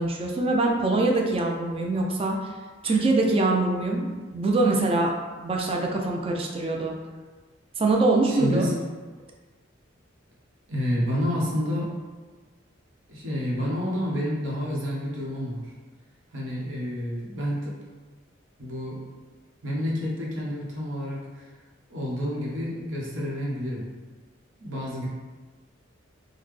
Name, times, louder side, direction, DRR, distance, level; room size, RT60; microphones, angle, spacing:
voice 1, 0.0-2.4 2.8-5.1 5.4-7.0 7.8-8.6, right 2 dB, 30° right, 1 dB, 0.4 m, -23 dB
voice 2, 8.3-8.8 10.7-11.9 13.1-15.7 16.3-17.7 18.6-19.0 19.6-21.5 21.9-23.8 24.6-25.1, equal, 80° right, -4 dB, 0.9 m, -29 dB
3.8 x 2.1 x 3.1 m, 1.3 s
head